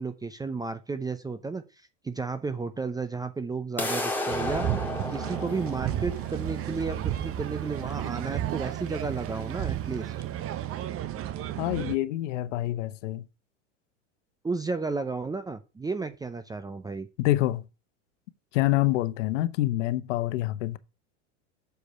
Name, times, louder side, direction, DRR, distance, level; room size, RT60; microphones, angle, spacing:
voice 1, 0.0-1.6 2.0-4.6 5.1-10.1 14.4-17.1, right 4 dB, 10° right, 0.6 m, -33 dB
sound 1, 3.8-9.8, left 2 dB, 5° left, 2.1 m, -35 dB
sound 2, 4.3-11.9, right 12 dB, 35° right, 0.9 m, -32 dB
voice 2, 11.6-13.2 17.2-17.6 18.5-20.8, left 16 dB, 75° left, 1.0 m, -26 dB
6.9 x 4.8 x 6.6 m
supercardioid pair, 115°, 37 cm